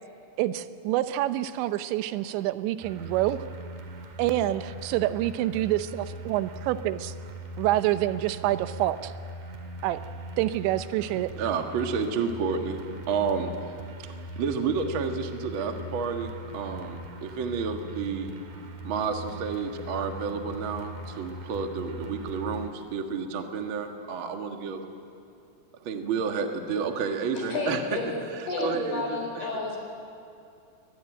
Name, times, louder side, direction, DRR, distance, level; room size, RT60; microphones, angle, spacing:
voice 1, 0.4-3.4 4.2-7.1 7.6-9.1 9.8-10.0 10.4-11.3, right 14 dB, 85° right, 12 dB, 3.1 m, -27 dB
sound 1, 2.8-22.7, right 1 dB, 50° right, 3.3 m, -40 dB
voice 2, 11.1-13.5 14.4-18.3 18.8-24.8 25.8-27.8 28.3-29.5, right 5 dB, 70° right, 4 dB, 1.2 m, -30 dB
voice 3, 27.4-28.2 28.5-29.8, left 4 dB, 60° left, 0 dB, 6.1 m, -31 dB
22.5 x 21.0 x 9.1 m, 2.5 s
omnidirectional pair, 5.1 m